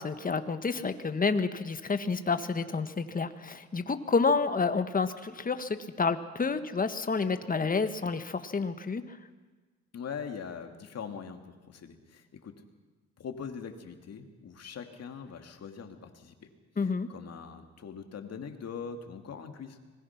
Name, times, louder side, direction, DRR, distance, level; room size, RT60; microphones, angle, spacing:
voice 1, 0.0-9.2 16.8-17.1, left 4 dB, 30° left, 10 dB, 1.5 m, -29 dB
voice 2, 9.9-12.6 13.2-16.5 16.8-19.8, left 6 dB, 55° left, 6 dB, 2.5 m, -42 dB
25.5 x 21.0 x 6.0 m, 1.3 s
cardioid pair, 90°, 30 cm